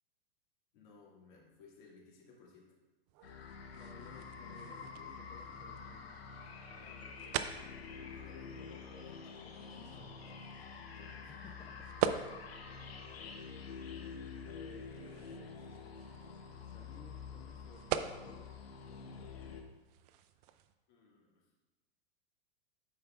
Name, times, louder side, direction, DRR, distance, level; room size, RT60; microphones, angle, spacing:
voice 1, 0.7-2.8 6.8-7.1 8.0-9.0 10.9-11.3 15.0-15.2 20.9-21.4, left 4 dB, 55° left, -3 dB, 2.1 m, -60 dB
sound 1, 3.1-20.7, right 10 dB, 45° right, 0.4 m, -44 dB
sound 2, 3.2-19.6, left 5 dB, 90° left, 1.0 m, -48 dB
voice 2, 3.8-6.2 9.6-10.5 11.3-11.9 14.1-15.8 16.6-18.5 18.9-19.6, left 4 dB, 15° left, 2 dB, 0.4 m, -58 dB
10.5 x 4.7 x 2.4 m, 1.2 s
hypercardioid pair, 120°, 30 cm